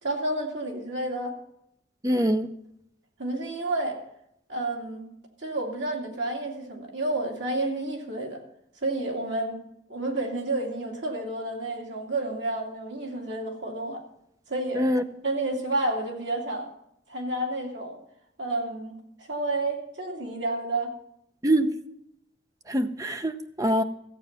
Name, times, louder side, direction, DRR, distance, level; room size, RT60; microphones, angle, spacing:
voice 1, 0.0-1.4 3.2-4.0 4.5-5.1 5.4-8.4 8.8-9.6 9.9-14.0 14.5-14.8 15.2-16.7 17.1-18.0 18.4-19.0 19.3-20.9, right 2 dB, 85° right, 2.4 m, -30 dB
voice 2, 2.0-2.5 14.7-15.0 21.4-21.7 22.7-23.8, equal, 20° right, 0.7 m, -24 dB
14.0 x 8.6 x 5.8 m
head